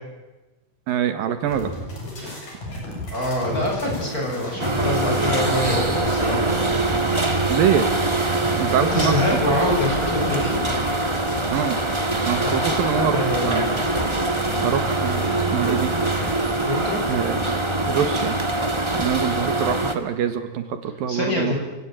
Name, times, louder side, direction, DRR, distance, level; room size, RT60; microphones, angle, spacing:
voice 1, 0.9-1.7 2.2-2.4 7.5-7.8 8.6-9.4 11.5-11.8 12.2-13.8 14.6-15.9 17.1-17.6 17.9-18.4 18.9-21.5, right 8 dB, 80° right, 10 dB, 3.3 m, -25 dB
sound 1, 1.5-16.6, left 1 dB, 60° left, 8.2 m, -34 dB
voice 2, 3.1-6.5 8.8-10.6 12.4-13.5 16.5-17.0 21.1-21.5, left 2 dB, 25° left, 0 dB, 7.5 m, -25 dB
sound 2, 4.6-19.9, right 2 dB, 40° right, 0.4 m, -23 dB
29.5 x 17.5 x 9.1 m, 1.1 s
omnidirectional pair, 4.1 m